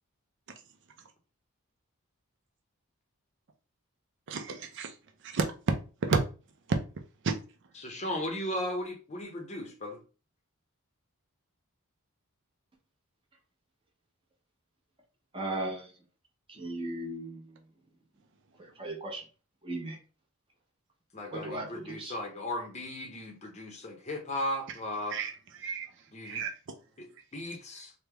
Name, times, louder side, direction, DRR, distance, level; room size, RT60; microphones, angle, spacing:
voice 1, 4.3-4.9 5.2-5.5 6.0-6.2 6.7-6.8 7.2-7.3 25.1-25.9 26.2-26.5, right 4 dB, 55° right, 5 dB, 0.4 m, -30 dB
voice 2, 7.8-10.0 21.1-25.2 26.1-26.4 27.0-27.9, left 1 dB, 30° left, 3 dB, 0.7 m, -36 dB
voice 3, 15.3-15.9 16.5-17.5 18.8-19.2 19.6-20.0 21.3-22.1, right 2 dB, 25° right, 0 dB, 0.8 m, -36 dB
3.2 x 2.1 x 3.3 m, 0.34 s
head